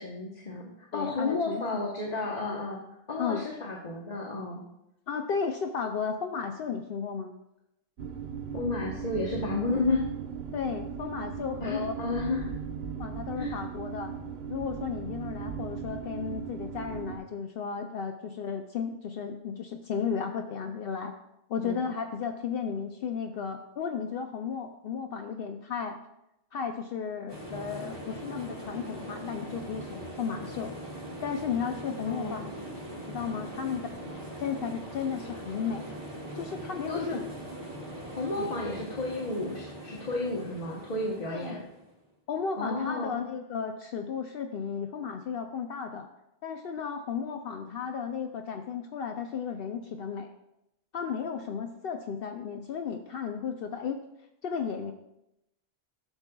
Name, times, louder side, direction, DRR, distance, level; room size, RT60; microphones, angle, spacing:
voice 1, 0.0-2.8 3.1-4.6 8.5-10.0 11.6-12.5 13.4-13.6 21.6-21.8 32.1-32.5 36.9-37.2 38.1-41.6 42.6-43.2, left 3 dB, 45° left, -2 dB, 1.0 m, -32 dB
voice 2, 0.9-1.6 2.5-2.6 3.2-3.4 5.1-7.4 10.5-11.9 13.0-14.1 14.5-21.1 21.5-26.0 26.5-30.7 31.2-32.4 33.1-33.9 34.4-35.9 36.3-37.2 38.4-38.5 41.3-41.6 42.3-46.1 46.4-50.3 50.9-54.0 54.4-54.9, left 6 dB, 70° left, 5 dB, 0.7 m, -34 dB
sound 1, 8.0-17.2, right 7 dB, 75° right, 0.9 m, -38 dB
sound 2, 27.3-42.0, right 1 dB, 25° right, 1.6 m, -41 dB
12.0 x 7.1 x 2.3 m, 0.85 s
omnidirectional pair, 1.1 m